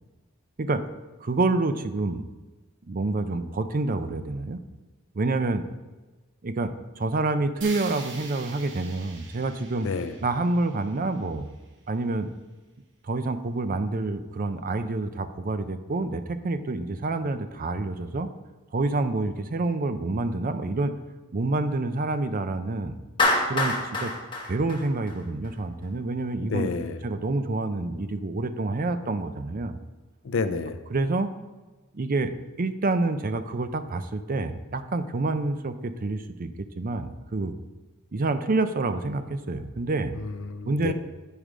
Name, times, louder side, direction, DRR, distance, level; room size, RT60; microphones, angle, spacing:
voice 1, 1.2-2.2 2.9-4.6 5.1-5.6 6.4-9.9 10.2-11.5 11.9-12.3 13.0-18.3 18.7-20.9 21.3-23.0 23.5-24.1 24.5-26.7 27.0-29.8 30.9-31.3 31.9-32.3 32.6-37.5 38.1-40.1 40.7-40.9, right 2 dB, 40° right, 10 dB, 0.5 m, -27 dB
sound 1, 7.6-11.7, right 4 dB, 60° right, 1.1 m, -44 dB
voice 2, 9.8-10.1 26.4-27.0 30.2-30.8 40.1-40.9, left 4 dB, 65° left, 11 dB, 0.6 m, -29 dB
Clapping, 23.2-25.5, left 2 dB, 25° left, 1.1 m, -26 dB
9.1 x 4.9 x 5.0 m, 1.2 s
head